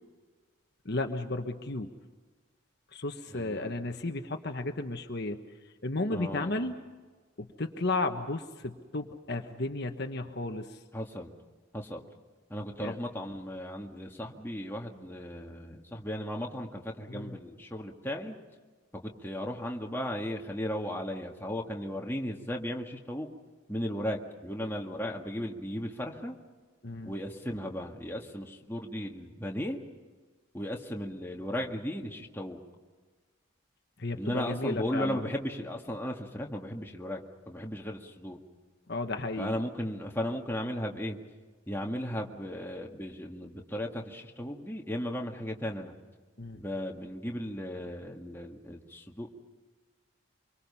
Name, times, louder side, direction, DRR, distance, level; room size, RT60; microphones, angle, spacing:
voice 1, 0.8-1.9 2.9-5.4 5.8-6.8 7.4-10.8 12.8-13.0 17.1-17.4 26.8-27.1 34.0-35.2 38.9-39.5 46.4-46.6, left 2 dB, 50° left, 5 dB, 1.3 m, -33 dB
voice 2, 3.3-3.8 6.1-6.5 10.9-11.3 11.7-12.0 12.5-18.4 19.0-23.3 23.7-26.4 27.0-29.8 30.5-32.6 34.2-37.2 37.5-38.4 39.4-41.2 41.7-45.9 46.5-49.3, equal, 10° left, 0 dB, 1.9 m, -36 dB
26.0 x 24.0 x 5.7 m, 1.3 s
head